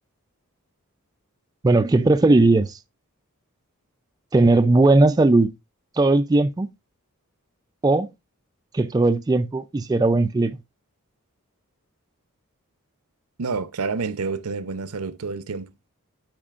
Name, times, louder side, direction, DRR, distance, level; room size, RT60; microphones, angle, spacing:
voice 1, 1.6-2.7 4.3-5.5 6.0-6.7 7.8-8.1 8.7-10.5, right 2 dB, 15° right, 0.3 m, -18 dB
voice 2, 13.4-15.7, right 4 dB, 80° right, 0.7 m, -28 dB
12.0 x 5.1 x 2.4 m
head